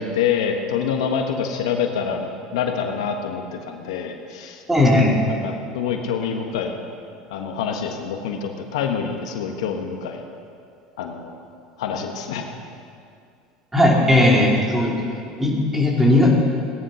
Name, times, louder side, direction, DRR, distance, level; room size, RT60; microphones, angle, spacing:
voice 1, 0.0-4.6 5.3-6.8 7.3-10.2 11.0-11.4 11.8-12.4, left 7 dB, 80° left, 4 dB, 1.4 m, -26 dB
voice 2, 4.7-5.2 13.7-14.9 15.4-16.3, left 1 dB, 10° right, -2 dB, 3.3 m, -17 dB
17.0 x 10.5 x 5.7 m, 2.4 s
hypercardioid pair, 95°, 3 cm